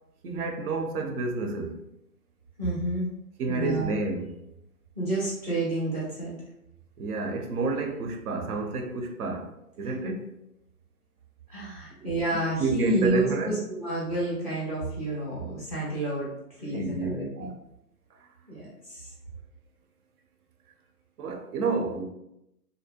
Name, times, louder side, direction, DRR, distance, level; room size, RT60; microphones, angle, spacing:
voice 1, 0.2-1.8 3.4-4.5 7.0-10.4 12.0-13.6 16.6-17.1 17.4-17.5 18.1-18.3 21.2-22.0, right 3 dB, 70° right, 0.6 m, -30 dB
voice 2, 2.6-3.1 3.5-3.9 5.0-6.4 11.5-16.3 16.6-17.5 18.5-19.1, right 1 dB, 25° right, 0.5 m, -29 dB
2.6 x 2.1 x 2.3 m
hypercardioid pair, 160°, 47 cm